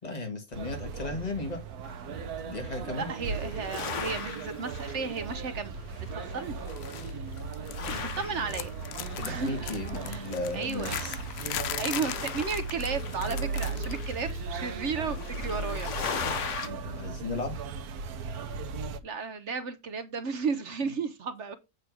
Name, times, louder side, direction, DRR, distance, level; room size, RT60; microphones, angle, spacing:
voice 1, 0.0-1.6 2.1-3.1 7.7-8.3 9.2-11.2 16.6-17.6, left 3 dB, 25° left, 1.9 m, -36 dB
sound 1, 0.5-19.0, right 4 dB, 75° right, 1.3 m, -37 dB
sound 2, 1.8-2.6 3.0-5.4 5.7-6.8 7.1-16.7, left 6 dB, 55° left, 1.2 m, -40 dB
voice 2, 2.8-5.7 6.1-6.6 8.0-8.7 9.2-9.5 10.0-11.0 11.8-15.9 19.0-21.6, right 5 dB, 55° right, 1.0 m, -34 dB
sound 3, 6.7-7.1 7.4-8.2 8.5-14.0 14.3-14.6 15.7-15.8, left 11 dB, 80° left, 0.5 m, -38 dB
8.2 x 3.3 x 6.1 m
omnidirectional pair, 1.7 m